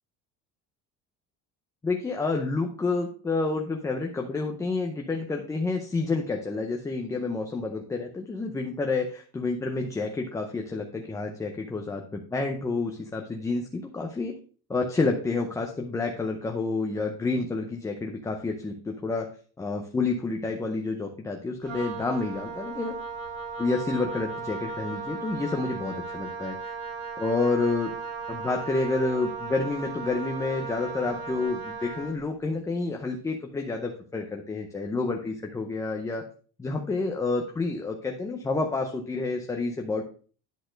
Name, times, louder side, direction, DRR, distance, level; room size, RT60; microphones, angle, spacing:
voice 1, 1.8-14.3 14.7-19.3 19.6-23.0 23.6-26.6 27.2-27.9 28.3-36.2 36.6-40.0, left 3 dB, 10° left, 2 dB, 0.6 m, -29 dB
Wind instrument woodwind instrument, 21.6-32.2, right 5 dB, 85° right, 3.5 m, -36 dB
10.5 x 4.2 x 5.0 m, 0.42 s
cardioid pair, 175°, 32 cm